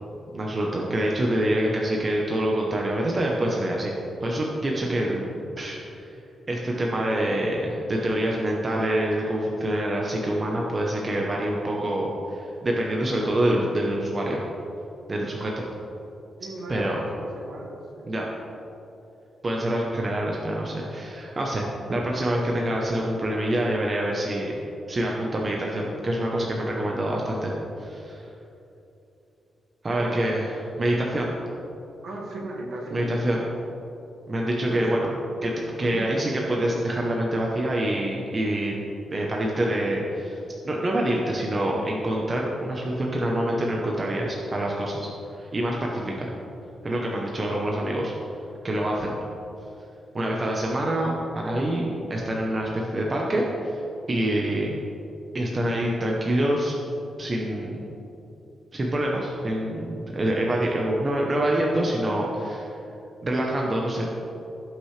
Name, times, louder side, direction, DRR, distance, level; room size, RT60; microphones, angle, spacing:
voice 1, 0.3-3.9 4.2-5.8 6.5-14.4 15.1-15.6 16.7-17.0 18.0-18.2 19.4-24.6 24.9-28.2 29.8-30.5 30.8-31.4 32.9-33.4 34.3-35.1 35.4-38.8 39.1-40.4 40.6-46.3 46.8-48.1 48.6-49.1 50.1-53.8 54.1-54.7 55.3-56.8 57.2-57.8 58.7-62.7 63.2-64.1, right 1 dB, 25° right, -2 dB, 0.8 m, -26 dB
voice 2, 16.4-18.1 29.9-30.3 32.0-33.2 34.7-35.0 35.8-36.1 54.2-54.5, right 2 dB, 60° right, -1 dB, 1.8 m, -36 dB
17.0 x 6.1 x 3.3 m, 2.9 s
wide cardioid pair, 175°, 0 cm